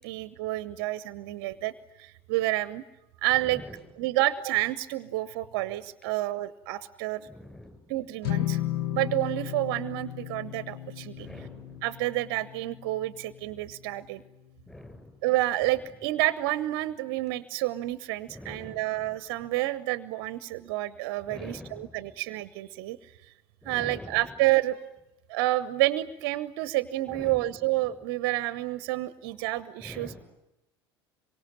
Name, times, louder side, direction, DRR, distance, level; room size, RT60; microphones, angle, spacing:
voice 1, 0.0-1.7 2.0-2.8 3.2-3.6 4.0-7.3 7.9-8.6 8.9-11.3 11.8-14.2 15.2-23.1 23.6-24.8 25.3-30.2, right 17 dB, 55° right, 16 dB, 0.9 m, -29 dB
voice 2, 3.4-3.8 7.3-8.0 11.2-11.8 14.7-15.2 18.3-19.1 21.2-22.1 23.6-24.2 27.1-27.7 29.8-30.2, left 1 dB, 5° left, 6 dB, 7.5 m, -45 dB
sound 1, 8.2-14.7, left 13 dB, 55° left, 0.9 m, -35 dB
26.5 x 24.0 x 9.0 m, 0.91 s
figure-of-eight pair, 70°, 14 cm